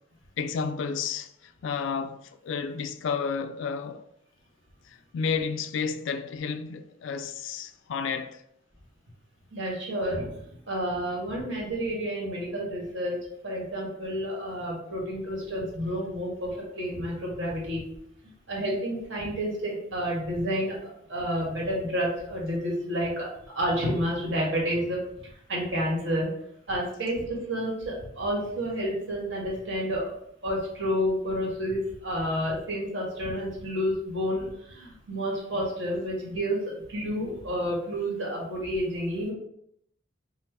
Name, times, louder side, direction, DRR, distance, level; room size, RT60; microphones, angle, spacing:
voice 1, 0.4-4.0 4.8-8.4, left 5 dB, 75° left, 0.3 m, -31 dB
voice 2, 9.5-10.3 10.7-13.2 13.4-16.5 16.7-17.8 18.5-20.7 21.1-23.3 23.5-25.0 25.5-26.3 26.7-30.1 30.4-36.6 36.9-39.3, equal, 65° right, 1.5 m, -30 dB
5.5 x 2.0 x 3.3 m
head